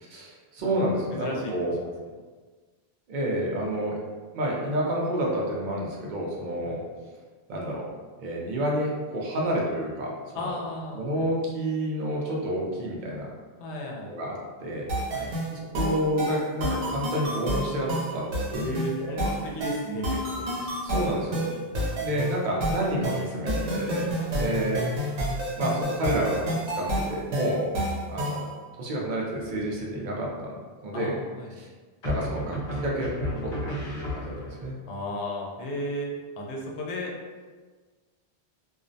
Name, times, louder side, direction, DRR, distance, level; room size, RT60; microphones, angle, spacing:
voice 1, 0.1-1.7 3.1-4.0 4.3-6.8 7.5-7.8 8.2-10.6 10.9-13.3 14.1-14.9 15.2-18.7 19.0-19.2 20.6-21.6 22.0-24.9 25.6-27.7 28.1-28.4 28.8-30.5 30.8-31.1 31.6-31.7 32.0-33.2 33.4-34.8, equal, 55° right, -3 dB, 0.6 m, -29 dB
voice 2, 1.1-1.9 6.7-6.8 10.3-11.0 13.6-14.1 15.1-15.3 18.5-20.5 21.3-21.5 21.8-22.1 24.2-24.7 30.9-31.5 33.2-33.7 34.9-37.1, left 1 dB, 90° left, -1 dB, 0.9 m, -35 dB
sound 1, 14.9-28.5, right 1 dB, 90° right, 0.9 m, -30 dB
sound 2, 29.4-29.9 32.0-34.7, left 1 dB, 60° left, 0.7 m, -33 dB
2.4 x 2.0 x 2.6 m, 1.4 s
omnidirectional pair, 1.1 m